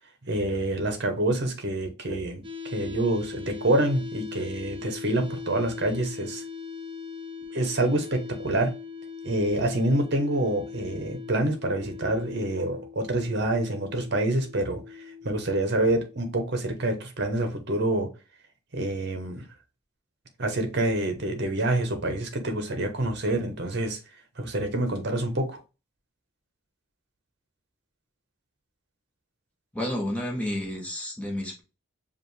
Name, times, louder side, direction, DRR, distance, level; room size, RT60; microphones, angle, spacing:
voice 1, 0.2-6.4 7.5-8.7 9.2-14.8 15.2-18.1 18.7-19.5 20.4-24.0 24.4-25.6, right 1 dB, 50° right, 1.0 m, -27 dB
sound 1, 2.4-16.4, left 6 dB, 25° right, 0.6 m, -40 dB
voice 2, 29.7-31.6, left 1 dB, 5° left, 1.1 m, -30 dB
5.0 x 2.5 x 3.2 m
head